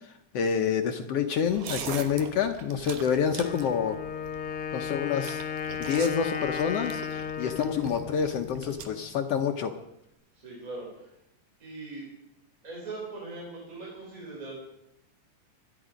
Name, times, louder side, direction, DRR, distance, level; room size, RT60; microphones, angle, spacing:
voice 1, 0.3-4.0 4.7-5.4 5.9-9.7, left 7 dB, 75° left, 6 dB, 1.4 m, -28 dB
sound 1, 1.5-8.9, right 6 dB, 75° right, 2.8 m, -42 dB
Wind instrument woodwind instrument, 3.4-9.1, left 7 dB, 55° left, 1.7 m, -35 dB
voice 2, 10.3-11.2 11.6-12.1 12.6-14.5, right 3 dB, 25° right, -3 dB, 4.3 m, -40 dB
25.5 x 11.0 x 5.1 m, 0.81 s
omnidirectional pair, 3.8 m